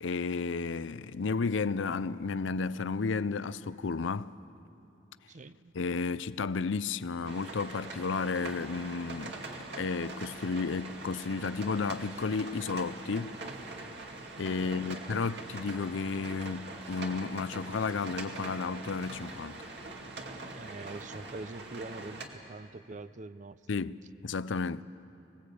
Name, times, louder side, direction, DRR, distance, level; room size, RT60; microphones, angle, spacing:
voice 1, 0.0-4.3 5.7-9.4 9.8-13.3 14.4-19.7 23.7-24.0 24.2-24.8, left 4 dB, 75° left, 0.5 m, -32 dB
voice 2, 5.3-5.7 14.6-15.1 20.6-23.8, right 2 dB, 40° right, 0.5 m, -44 dB
sound 1, 7.3-22.3, right 2 dB, 60° right, 2.4 m, -43 dB
sound 2, 7.9-17.2 17.5-21.2, right 2 dB, 85° right, 4.8 m, -60 dB
23.5 x 20.0 x 8.5 m
head